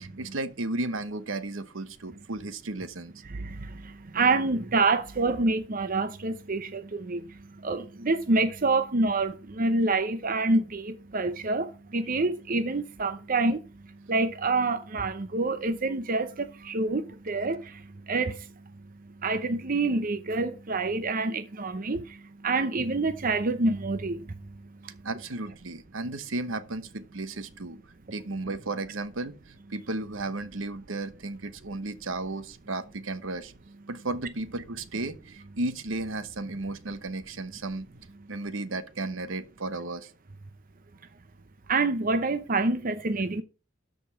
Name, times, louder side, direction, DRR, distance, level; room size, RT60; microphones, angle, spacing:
voice 1, 0.0-3.1 25.0-27.8 28.1-33.5 33.9-37.9 38.3-40.1, right 2 dB, 70° right, 1.0 m, -34 dB
voice 2, 3.2-24.9 41.7-43.4, right 3 dB, 45° right, 0.7 m, -27 dB
13.0 x 5.3 x 5.8 m
head